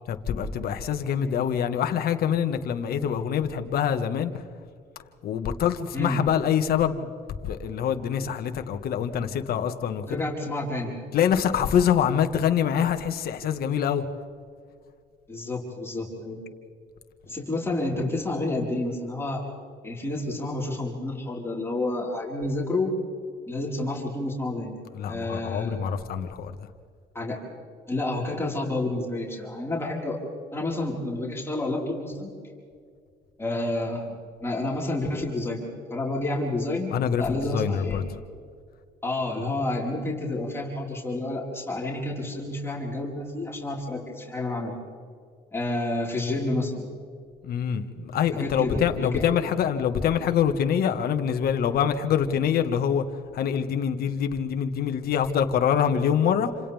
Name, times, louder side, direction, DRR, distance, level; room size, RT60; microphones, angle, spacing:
voice 1, 0.1-4.4 5.2-7.1 7.4-10.2 11.1-14.0 24.9-26.6 36.9-38.0 47.4-53.1 53.3-56.5, left 8 dB, 65° left, 1.9 m, -25 dB
voice 2, 10.1-11.0 15.3-16.4 17.3-19.4 19.8-23.0 23.5-24.8 25.1-25.8 27.2-27.4 27.9-30.2 30.5-32.3 33.4-38.2 39.0-44.8 45.5-46.9 48.3-49.2, left 2 dB, 15° left, 5.1 m, -29 dB
29.0 x 27.5 x 3.7 m
cardioid pair, 110°, 17 cm